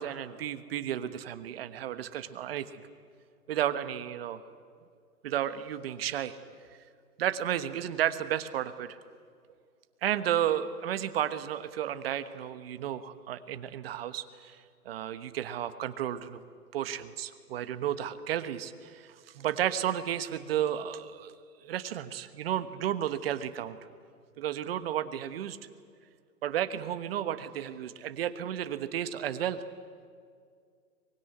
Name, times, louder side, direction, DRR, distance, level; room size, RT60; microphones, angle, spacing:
voice 1, 0.0-2.8 3.5-4.4 5.2-6.4 7.2-9.0 10.0-14.6 14.8-16.4 16.7-21.3 21.6-23.8 24.4-25.6 26.4-29.6, right 10 dB, 40° right, 12 dB, 1.3 m, -32 dB
23.5 x 20.5 x 9.7 m, 2.1 s
hypercardioid pair, 155°, 46 cm